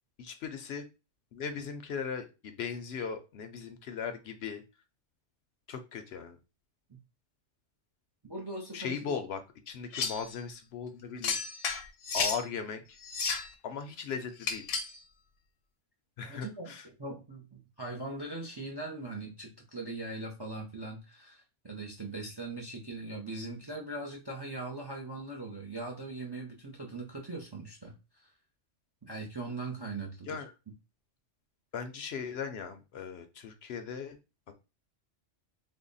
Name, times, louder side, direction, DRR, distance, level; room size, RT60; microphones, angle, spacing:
voice 1, 0.2-0.8 1.3-4.6 5.7-6.4 8.7-9.4 9.7-11.4 12.1-13.0 13.6-14.7 16.2-16.9 30.3-30.5 31.7-34.2, left 6 dB, 65° left, 8 dB, 0.7 m, -38 dB
voice 2, 8.2-9.1 16.3-28.3 29.0-30.4, right 2 dB, 30° right, 1 dB, 0.5 m, -40 dB
sound 1, 9.9-10.3 11.2-12.4 13.0-13.5 14.4-15.0, left 5 dB, 85° left, 1.1 m, -32 dB
3.4 x 2.2 x 3.9 m, 0.29 s
omnidirectional pair, 1.2 m